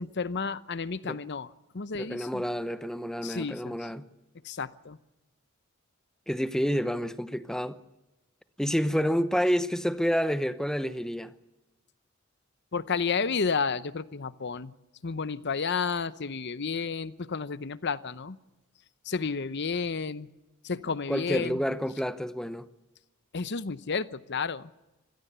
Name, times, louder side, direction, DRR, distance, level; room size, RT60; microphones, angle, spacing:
voice 1, 0.0-2.4 3.2-3.9 4.4-5.0 12.7-14.7 15.0-18.4 19.0-20.3 20.6-21.6 23.3-24.7, left 5 dB, 55° left, 0.8 m, -31 dB
voice 2, 2.0-4.1 6.3-7.8 8.6-11.3 21.1-22.7, equal, 5° left, 0.8 m, -29 dB
26.0 x 17.5 x 6.9 m
head